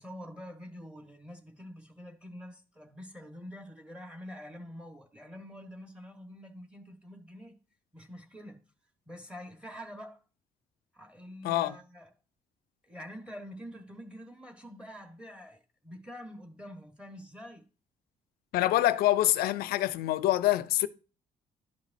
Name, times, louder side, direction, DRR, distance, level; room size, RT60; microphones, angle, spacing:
voice 1, 0.0-7.5 7.9-8.6 9.1-10.2 10.9-12.1 12.9-17.7, equal, 5° right, 1.4 m, -46 dB
voice 2, 18.5-20.9, left 14 dB, 85° left, 0.5 m, -25 dB
11.5 x 5.1 x 2.7 m
cardioid pair, 85°, 15 cm